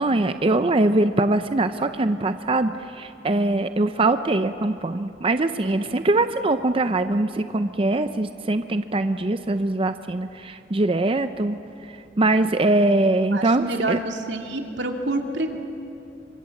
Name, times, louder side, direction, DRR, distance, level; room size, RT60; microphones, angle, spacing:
voice 1, 0.0-11.6 12.2-14.0, right 2 dB, 30° right, 10 dB, 0.6 m, -22 dB
voice 2, 5.6-6.0 13.3-15.5, right 2 dB, 85° right, 3 dB, 2.5 m, -28 dB
26.5 x 25.0 x 7.7 m, 2.8 s
head